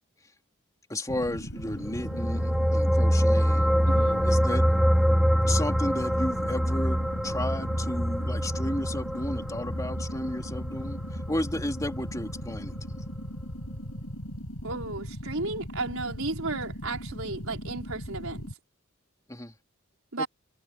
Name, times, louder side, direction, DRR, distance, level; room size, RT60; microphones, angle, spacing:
voice 1, 0.9-3.7 4.2-4.7 5.4-13.0 19.3-19.5 20.2-20.3, left 1 dB, 15° left, 3.7 m, -33 dB
sound 1, 1.1-18.5, equal, 65° left, 5.5 m, -38 dB
sound 2, 1.8-12.5 12.8-13.0, equal, ahead, 1.2 m, -25 dB
voice 2, 3.9-4.2 14.6-18.5 20.1-20.3, right 2 dB, 75° right, 4.7 m, -34 dB
head